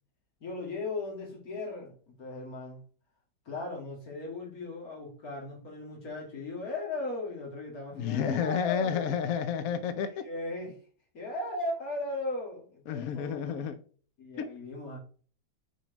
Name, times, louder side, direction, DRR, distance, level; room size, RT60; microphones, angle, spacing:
voice 1, 0.4-2.8 3.5-9.1 10.0-10.8 11.1-13.7 14.2-15.0, left 2 dB, 50° left, 2.7 m, -37 dB
voice 2, 7.9-10.3 12.9-13.8 14.4-14.5, left 8 dB, 70° left, 0.8 m, -31 dB
6.5 x 4.7 x 5.0 m
omnidirectional pair, 2.1 m